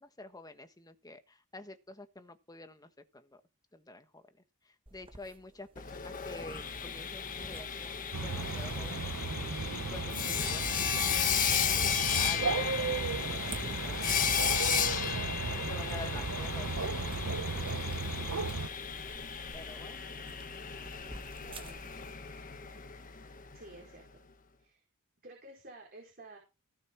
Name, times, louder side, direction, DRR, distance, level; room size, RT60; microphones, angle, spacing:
voice 1, 0.0-3.4 3.7-4.2 4.6-9.1 9.7-14.5 15.7-17.0 17.4-17.7 19.5-20.1, left 2 dB, 15° left, 1.3 m, -49 dB
sound 1, 4.9-22.0, right 3 dB, 25° right, 1.5 m, -52 dB
Sawing, 5.8-23.6, left 7 dB, 40° left, 1.3 m, -34 dB
sound 2, 8.1-18.7, right 3 dB, 65° right, 0.9 m, -35 dB
voice 2, 21.4-22.2 23.5-24.1 24.6-24.8 25.2-26.4, right 2 dB, 45° right, 4.3 m, -52 dB
17.0 x 6.5 x 4.6 m
head